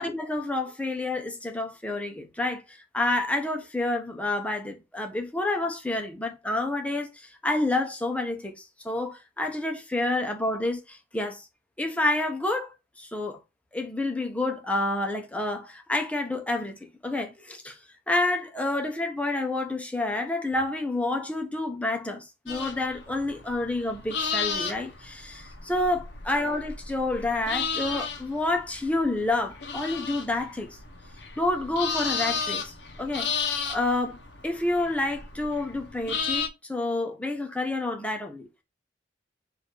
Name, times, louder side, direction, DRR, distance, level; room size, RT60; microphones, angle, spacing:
voice 1, 0.0-2.6 2.9-7.1 7.4-11.4 11.8-12.7 13.0-13.4 13.7-17.8 18.1-30.7 31.4-34.2 34.4-38.6, left 2 dB, 10° left, 0.8 m, -29 dB
sound 1, 22.5-36.5, left 5 dB, 70° left, 0.9 m, -34 dB
4.2 x 2.6 x 4.6 m
head